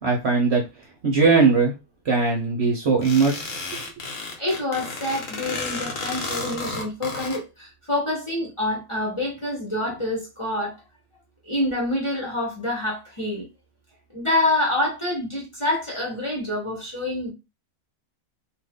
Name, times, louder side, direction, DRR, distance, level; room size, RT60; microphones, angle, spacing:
voice 1, 0.0-0.6 1.0-1.7 2.1-3.4, right 4 dB, 55° right, 0.9 m, -19 dB
sound 1, 3.0-7.4, left 3 dB, 60° left, 1.2 m, -32 dB
voice 2, 4.2-10.7 11.5-13.5 14.1-17.3, left 1 dB, 20° left, 1.0 m, -27 dB
2.7 x 2.5 x 3.5 m
omnidirectional pair, 1.6 m